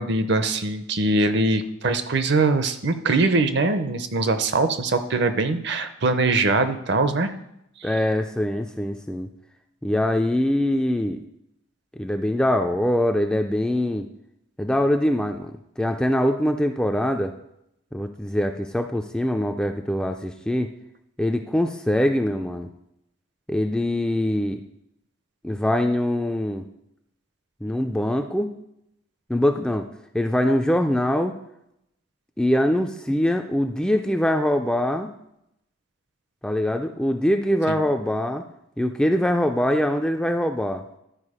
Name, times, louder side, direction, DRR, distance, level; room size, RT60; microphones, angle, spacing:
voice 1, 0.0-7.3 7.8-7.9 37.7-37.8, right 3 dB, 55° right, 10 dB, 0.6 m, -22 dB
voice 2, 7.8-9.3 9.8-11.2 12.0-14.1 14.6-17.3 17.9-20.7 21.2-22.7 23.5-24.6 25.4-26.7 27.6-28.5 29.3-29.9 30.1-31.3 32.4-35.1 36.4-38.4 38.8-40.8, left 1 dB, 5° left, 5 dB, 0.3 m, -23 dB
11.5 x 4.8 x 4.9 m, 0.81 s
head